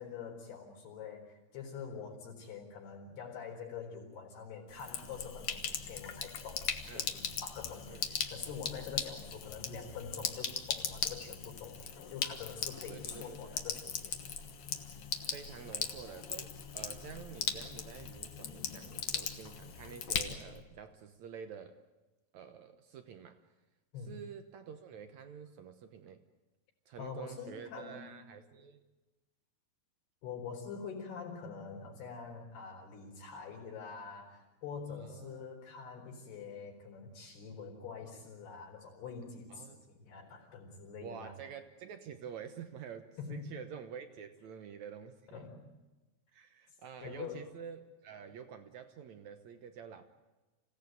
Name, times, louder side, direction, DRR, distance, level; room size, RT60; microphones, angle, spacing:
voice 1, 0.0-11.8 12.1-14.2 23.9-24.1 27.0-28.1 30.2-41.3 43.2-43.5 45.3-45.7 47.0-47.5, left 6 dB, 80° left, 0 dB, 6.2 m, -45 dB
Sink (filling or washing), 4.7-20.6, left 7 dB, 60° left, 1.5 m, -39 dB
voice 2, 12.9-13.6 15.3-21.8 22.3-23.4 24.1-26.2 26.9-28.8 34.9-35.5 39.5-39.8 41.0-45.5 46.3-50.0, right 7 dB, 75° right, 8 dB, 1.7 m, -48 dB
27.5 x 17.0 x 9.3 m, 1.1 s
omnidirectional pair, 4.6 m